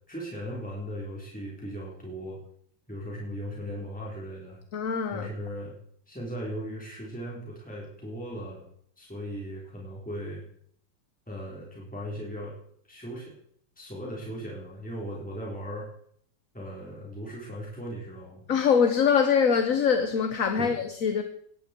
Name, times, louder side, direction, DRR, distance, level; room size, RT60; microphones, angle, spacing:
voice 1, 0.1-2.4 2.9-4.6 5.1-5.7 6.1-8.7 9.0-10.4 11.3-12.5 12.8-13.4 13.8-15.9 16.5-18.4 20.5-20.7, equal, 5° left, 4.0 m, -37 dB
voice 2, 4.7-5.3 18.5-21.2, left 6 dB, 50° left, 1.3 m, -23 dB
19.0 x 14.5 x 4.6 m
omnidirectional pair, 2.1 m